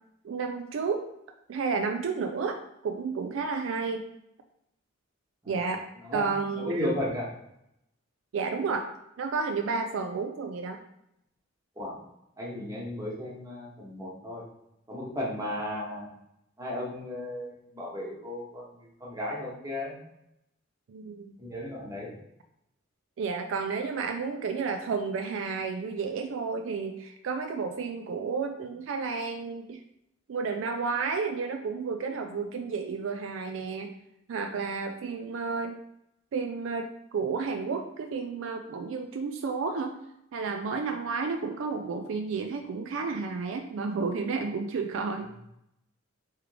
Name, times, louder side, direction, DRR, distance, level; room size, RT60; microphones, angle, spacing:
voice 1, 0.2-1.1 1.5-2.6 2.8-4.0 5.5-5.8 6.1-6.8 8.3-8.9 9.2-10.8 20.9-21.4 23.2-29.8 30.3-33.9 34.3-35.8 36.3-40.0 40.3-45.3, right 5 dB, 65° right, 5 dB, 0.3 m, -31 dB
voice 2, 6.0-7.3 11.8-11.9 12.4-14.4 14.9-16.1 16.6-20.0 21.4-22.1, left 1 dB, 15° right, -4 dB, 1.0 m, -35 dB
3.6 x 3.3 x 3.2 m, 0.81 s
head